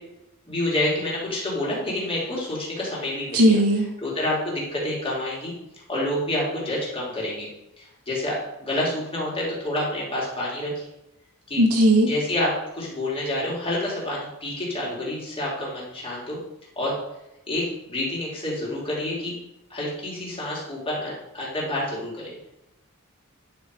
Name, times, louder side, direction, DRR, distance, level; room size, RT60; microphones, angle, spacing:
voice 1, 0.5-3.6 4.0-5.5 5.9-7.5 7.8-10.8 11.5-11.6 12.1-16.4 16.8-16.9 17.5-19.3 19.7-22.5, left 1 dB, 25° left, -5 dB, 3.7 m, -28 dB
voice 2, 3.3-3.9 11.6-12.1, right 1 dB, 80° right, 0 dB, 2.3 m, -17 dB
10.5 x 6.4 x 4.9 m, 0.88 s
head